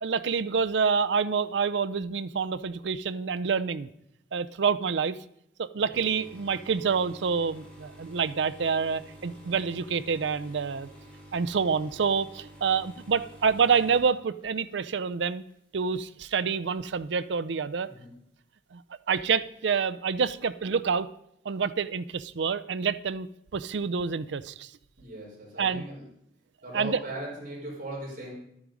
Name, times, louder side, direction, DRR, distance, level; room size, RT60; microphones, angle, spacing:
voice 1, 0.0-3.9 4.3-5.2 5.6-10.9 11.3-15.4 15.7-17.9 18.7-18.8 19.1-21.1 21.5-23.3 23.5-24.7 25.6-25.8 26.7-27.0, right 5 dB, 75° right, 14 dB, 0.5 m, -27 dB
sound 1, 5.9-15.1 15.5-15.8 16.7-16.8, equal, 5° left, 3.2 m, -49 dB
voice 2, 25.0-26.0 26.6-28.3, right 1 dB, 45° right, -3 dB, 4.2 m, -39 dB
11.0 x 9.7 x 5.1 m, 0.78 s
head